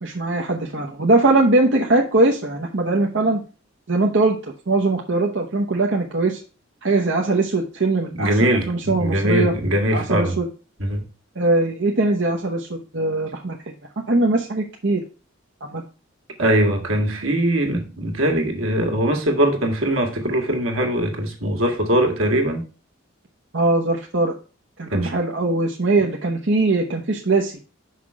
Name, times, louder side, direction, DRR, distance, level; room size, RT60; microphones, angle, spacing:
voice 1, 0.0-3.4 3.9-4.4 4.7-6.4 6.8-9.5 9.9-10.5 11.3-13.6 14.1-15.0 15.6-15.8 23.5-24.3 24.8-27.5, right 2 dB, 60° right, 1.1 m, -21 dB
voice 2, 8.1-10.3 10.8-11.0 16.4-22.6 24.9-25.1, right 1 dB, 85° right, 2.0 m, -21 dB
5.9 x 5.5 x 4.8 m
head